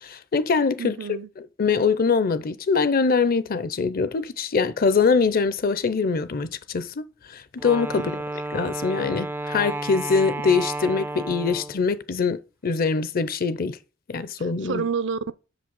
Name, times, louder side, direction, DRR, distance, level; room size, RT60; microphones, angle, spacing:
voice 1, 0.0-1.0 1.4-7.0 7.3-8.1 8.5-13.8 14.1-14.8, left 5 dB, 50° left, 0.5 m, -23 dB
voice 2, 0.8-1.3 7.9-8.2 14.4-15.3, right 5 dB, 65° right, 0.5 m, -29 dB
Wind instrument woodwind instrument, 7.6-11.9, right 2 dB, 10° right, 0.3 m, -32 dB
6.4 x 5.2 x 5.3 m
head